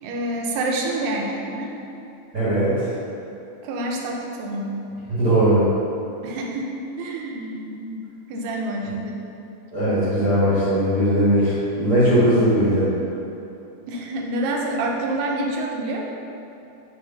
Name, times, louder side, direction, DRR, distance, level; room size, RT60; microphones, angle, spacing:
voice 1, 0.0-1.8 3.6-4.8 6.2-9.2 13.9-16.0, right 1 dB, 85° right, 0 dB, 2.5 m, -27 dB
voice 2, 2.3-2.9 5.1-5.6 9.7-12.9, equal, 45° right, -11 dB, 1.1 m, -19 dB
6.5 x 3.4 x 5.7 m, 2.8 s
omnidirectional pair, 4.0 m